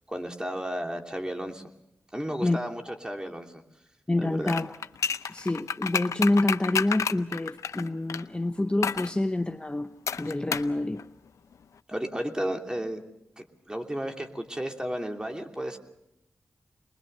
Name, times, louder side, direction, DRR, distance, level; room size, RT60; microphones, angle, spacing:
voice 1, 0.1-1.6 2.1-3.6 4.2-4.6 11.9-13.0 13.4-15.8, right 1 dB, 15° right, 2.9 m, -33 dB
voice 2, 4.1-4.7 5.3-11.1, left 2 dB, 20° left, 0.8 m, -27 dB
sound 1, 4.4-8.2 8.8-9.1 10.1-10.7 11.0-11.1, left 6 dB, 85° left, 0.7 m, -30 dB
24.0 x 21.0 x 6.7 m
cardioid pair, 50°, 5 cm